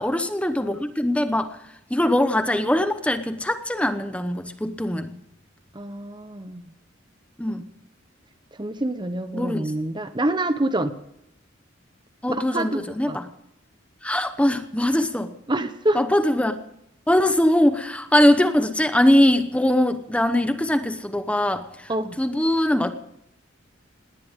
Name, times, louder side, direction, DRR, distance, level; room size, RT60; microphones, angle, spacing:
voice 1, 0.0-1.6 1.9-5.1 7.4-7.7 9.3-9.7 12.2-13.3 14.0-15.3 15.9-16.6 17.1-21.9 22.2-22.9, left 1 dB, 5° left, 9 dB, 0.9 m, -21 dB
voice 2, 5.7-6.7 8.6-10.9 12.3-13.2 15.5-16.0 21.9-22.2, right 1 dB, 25° right, 10 dB, 1.0 m, -26 dB
19.0 x 19.0 x 3.7 m, 0.77 s
head